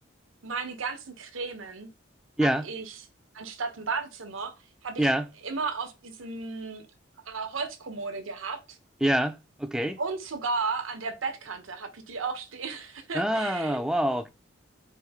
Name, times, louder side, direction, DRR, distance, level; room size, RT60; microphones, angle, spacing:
voice 1, 0.4-1.9 2.4-2.9 3.3-4.5 4.8-5.1 5.4-6.8 7.3-8.8 10.0-13.8, right 4 dB, 85° right, 0.9 m, -34 dB
voice 2, 9.0-10.0 13.1-14.3, right 1 dB, 5° right, 0.3 m, -26 dB
4.5 x 2.6 x 3.5 m
head